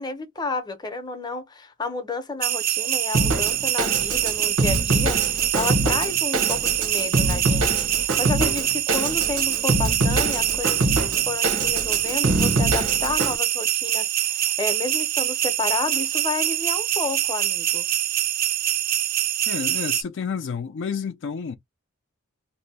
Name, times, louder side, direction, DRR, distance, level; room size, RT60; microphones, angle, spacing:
voice 1, 0.0-10.9 11.3-17.9, left 3 dB, 20° left, 0.7 m, -31 dB
sound 1, 2.4-20.0, right 12 dB, 40° right, 0.4 m, -24 dB
Drum kit, 3.1-13.4, right 2 dB, 90° right, 0.9 m, -24 dB
voice 2, 19.5-21.6, left 6 dB, 60° left, 0.4 m, -30 dB
2.7 x 2.1 x 4.0 m
head